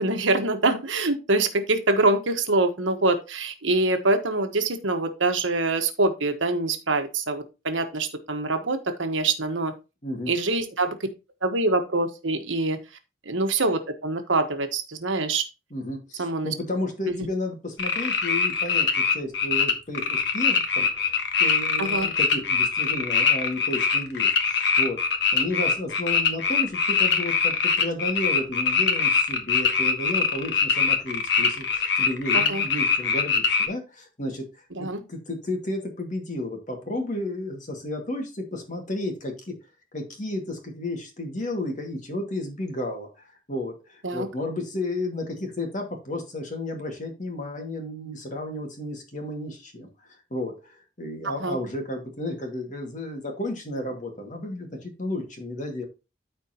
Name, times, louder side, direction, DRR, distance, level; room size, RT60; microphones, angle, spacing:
voice 1, 0.0-9.7 10.3-11.0 11.4-12.8 13.2-15.4 16.2-16.5 17.2-17.3 21.8-22.1 32.3-32.6 34.8-35.0 44.0-44.3 51.2-51.6, right 2 dB, 75° right, 7 dB, 1.3 m, -25 dB
voice 2, 10.0-10.3 15.7-34.4 34.8-39.6 39.9-55.8, left 1 dB, 40° left, 3 dB, 2.1 m, -32 dB
sound 1, 17.8-33.7, left 5 dB, 60° left, 1.3 m, -23 dB
13.5 x 4.5 x 2.9 m, 0.28 s
head